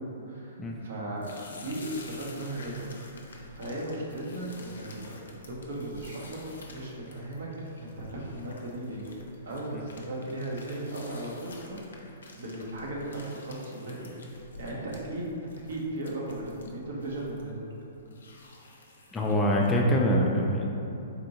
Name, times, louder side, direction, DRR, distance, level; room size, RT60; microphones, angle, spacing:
voice 1, 0.0-3.0 3.5-7.5 7.8-9.1 9.4-14.1 14.6-17.7 19.5-19.8, right 1 dB, 65° right, -4 dB, 0.8 m, -37 dB
sound 1, 1.2-19.9, left 2 dB, 70° left, 0.5 m, -50 dB
voice 2, 19.1-20.6, equal, 15° left, -2 dB, 0.4 m, -24 dB
4.1 x 2.6 x 2.8 m, 2.8 s
hypercardioid pair, 120°, 0 cm